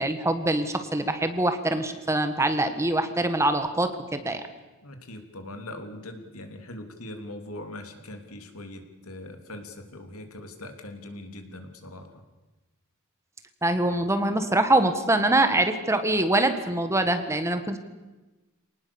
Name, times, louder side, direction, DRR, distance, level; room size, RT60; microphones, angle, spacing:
voice 1, 0.0-4.4 13.6-17.8, right 2 dB, 15° right, 8 dB, 1.5 m, -24 dB
voice 2, 4.8-12.2, left 1 dB, 80° left, 5 dB, 3.2 m, -41 dB
27.0 x 19.0 x 7.1 m, 1.1 s
head